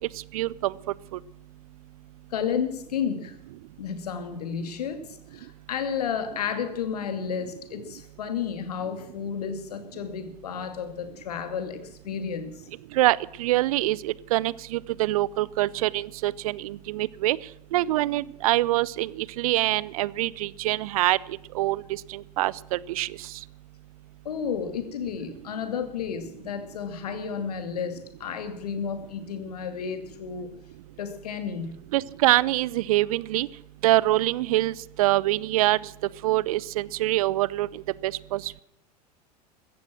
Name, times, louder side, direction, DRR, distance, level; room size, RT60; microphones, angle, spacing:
voice 1, 0.3-0.7 12.9-17.4 17.7-21.2 21.5-21.8 22.1-23.1 31.9-33.5 33.8-34.7 35.0-35.8 36.2-38.6, right 16 dB, 60° right, 23 dB, 0.7 m, -24 dB
voice 2, 2.3-3.4 3.8-12.7 24.2-30.5 31.0-31.8, left 7 dB, 70° left, 9 dB, 2.6 m, -32 dB
15.5 x 14.0 x 6.1 m, 0.78 s
figure-of-eight pair, 80°, 20 cm